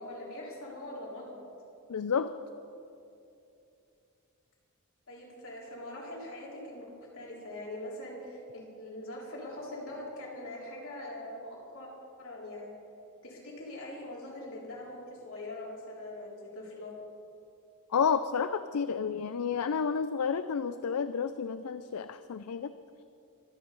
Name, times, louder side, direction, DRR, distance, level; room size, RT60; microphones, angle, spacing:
voice 1, 0.0-1.4 5.1-11.9 12.2-12.7 13.2-16.9, left 1 dB, 65° left, -4 dB, 4.1 m, -42 dB
voice 2, 1.9-2.3 17.9-22.7, left 6 dB, 85° left, 12 dB, 0.5 m, -30 dB
24.5 x 8.8 x 5.4 m, 2.7 s
head